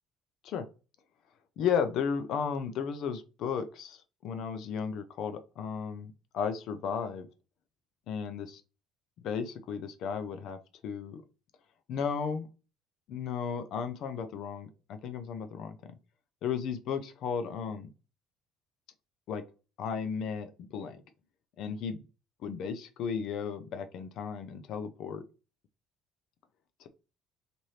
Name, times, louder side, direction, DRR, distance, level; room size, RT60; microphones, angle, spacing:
voice 1, 1.6-7.3 8.1-8.6 9.2-11.2 11.9-12.5 13.1-16.0 16.4-17.9 19.3-19.4 19.8-21.0 21.6-22.0 22.4-25.2 26.8-26.9, left 6 dB, 45° left, 9 dB, 0.5 m, -34 dB
3.2 x 2.5 x 4.2 m, 0.32 s
cardioid pair, 175°, 0 cm